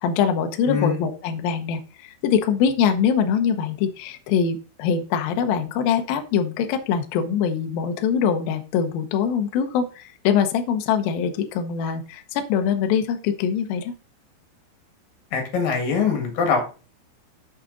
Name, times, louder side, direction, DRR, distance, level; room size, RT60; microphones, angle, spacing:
voice 1, 0.0-13.9, left 7 dB, 85° left, 6 dB, 2.0 m, -23 dB
voice 2, 0.7-1.0 15.3-16.8, left 5 dB, 55° left, 3 dB, 2.8 m, -23 dB
8.8 x 7.3 x 3.8 m, 0.35 s
omnidirectional pair, 5.6 m